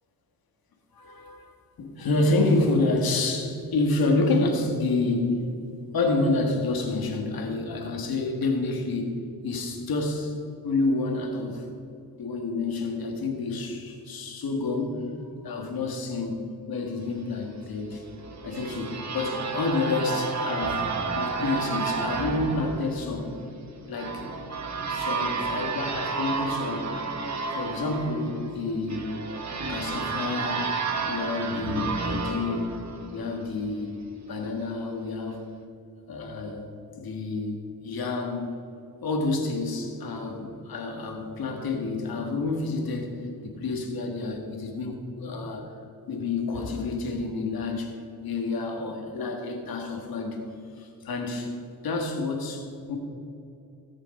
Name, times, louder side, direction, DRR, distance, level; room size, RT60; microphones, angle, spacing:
voice 1, 0.9-5.4 5.9-10.4 10.6-11.7 12.2-18.0 18.4-20.9 21.2-23.3 23.8-24.2 24.8-26.9 27.5-29.1 29.7-30.7 31.1-32.8 33.1-34.0 34.3-35.5 36.1-36.7 37.0-38.5 39.0-45.7 46.1-50.4 50.8-51.5 51.8-53.0, left 3 dB, 90° left, 3 dB, 1.7 m, -29 dB
sound 1, 17.9-33.6, right 4 dB, 50° right, 1.3 m, -31 dB
17.5 x 6.5 x 5.4 m, 2.7 s
cardioid pair, 90°, 35 cm